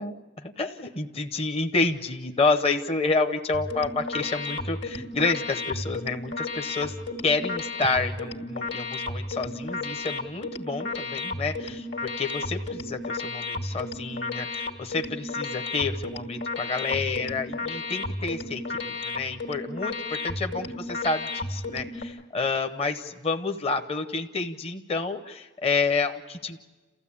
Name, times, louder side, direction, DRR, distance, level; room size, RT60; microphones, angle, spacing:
voice 1, 0.0-6.9 7.2-26.6, left 3 dB, 30° left, 6 dB, 0.8 m, -29 dB
sound 1, 3.5-22.0, left 2 dB, 65° left, 2.0 m, -33 dB
29.0 x 15.0 x 8.6 m, 1.3 s
head